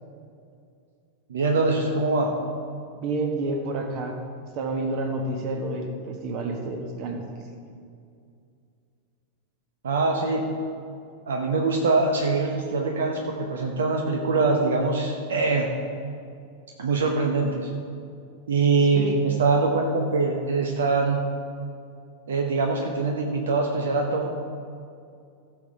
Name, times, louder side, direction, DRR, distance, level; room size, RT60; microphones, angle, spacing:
voice 1, 1.3-2.4 9.8-10.5 11.3-15.7 16.8-17.7 18.5-21.3 22.3-24.3, right 3 dB, 65° right, 2 dB, 0.9 m, -23 dB
voice 2, 3.0-4.2 4.5-7.2 18.9-19.2, right 2 dB, 40° right, 4 dB, 1.4 m, -29 dB
15.0 x 6.8 x 4.6 m, 2.4 s
figure-of-eight pair, 90°, 0 cm